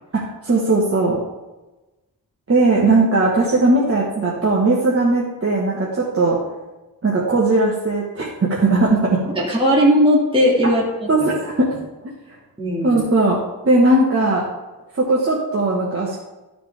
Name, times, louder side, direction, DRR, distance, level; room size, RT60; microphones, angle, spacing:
voice 1, 0.1-1.2 2.5-6.4 7.0-9.2 11.1-11.7 12.8-13.4 13.6-14.4 14.9-16.2, right 2 dB, 35° right, -5 dB, 1.5 m, -18 dB
voice 2, 9.4-11.1 12.6-13.0, equal, 15° right, -4 dB, 2.2 m, -17 dB
12.5 x 5.0 x 3.4 m, 1.1 s
wide cardioid pair, 95°, 38 cm